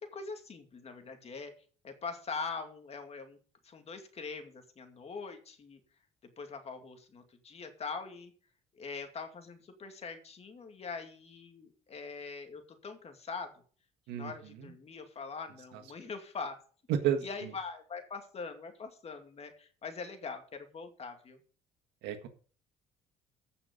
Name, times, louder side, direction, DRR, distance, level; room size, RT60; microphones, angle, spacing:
voice 1, 0.1-1.5 1.8-3.4 3.6-5.8 6.4-8.3 8.7-13.5 14.1-16.6 17.2-21.4, left 4 dB, 40° left, 6 dB, 2.3 m, -42 dB
voice 2, 14.1-14.7 16.9-17.5 22.0-22.3, right 9 dB, 90° right, 8 dB, 1.7 m, -32 dB
15.0 x 5.9 x 5.3 m, 0.42 s
cardioid pair, 110°, 17 cm